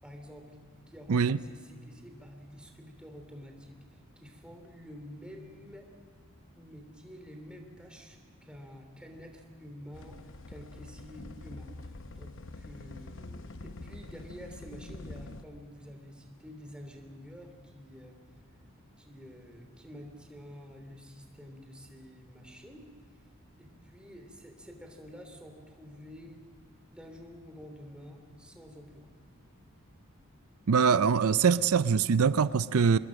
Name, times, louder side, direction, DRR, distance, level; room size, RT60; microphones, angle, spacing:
voice 1, 0.0-0.6 0.9-5.9 6.5-18.2 19.0-22.9 23.6-26.4 26.9-29.1, equal, 5° right, 3.2 m, -49 dB
sound 1, 9.9-15.4, left 2 dB, 60° left, 0.9 m, -45 dB
voice 2, 30.7-33.0, right 6 dB, 80° right, 0.5 m, -23 dB
25.5 x 21.5 x 6.4 m
head